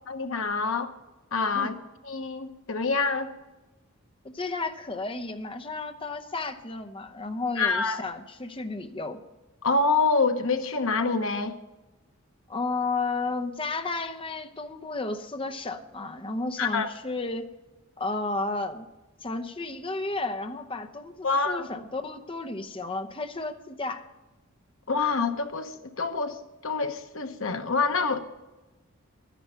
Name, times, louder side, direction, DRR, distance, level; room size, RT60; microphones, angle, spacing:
voice 1, 0.1-0.9 1.3-1.7 2.0-3.3 7.6-8.0 9.6-11.6 16.6-16.9 21.2-21.7 24.9-26.4 26.6-28.2, left 4 dB, 75° left, 1.0 m, -26 dB
voice 2, 4.3-9.2 12.5-17.5 18.0-18.9 19.2-24.0, left 3 dB, 25° left, 0.8 m, -32 dB
12.5 x 10.0 x 5.7 m
head